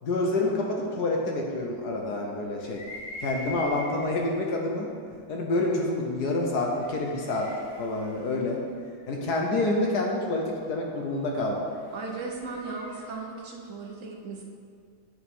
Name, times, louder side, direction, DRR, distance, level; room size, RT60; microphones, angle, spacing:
voice 1, 0.0-2.8 3.2-4.9 5.3-7.5 7.8-8.6 9.1-11.6, left 2 dB, 60° left, 0 dB, 1.2 m, -27 dB
sound 1, 2.6-4.3 5.1-5.2 6.5-9.4 11.5-13.2, equal, 85° left, 2.3 m, -43 dB
voice 2, 11.9-14.4, right 3 dB, 55° right, 0 dB, 0.9 m, -36 dB
9.3 x 6.7 x 3.6 m, 2.2 s
omnidirectional pair, 2.3 m